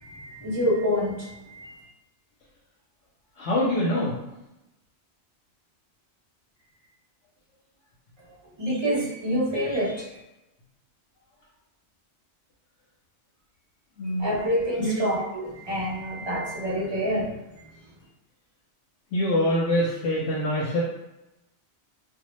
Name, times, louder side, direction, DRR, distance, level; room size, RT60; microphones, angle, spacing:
voice 1, 0.0-1.9 8.3-10.1 14.2-17.3 17.6-17.7, equal, 30° right, -6 dB, 0.6 m, -27 dB
voice 2, 3.4-4.2 14.0-14.3 14.8-15.0 19.1-20.8, left 1 dB, 85° left, -5 dB, 0.9 m, -24 dB
2.2 x 2.0 x 3.0 m, 0.93 s
omnidirectional pair, 1.2 m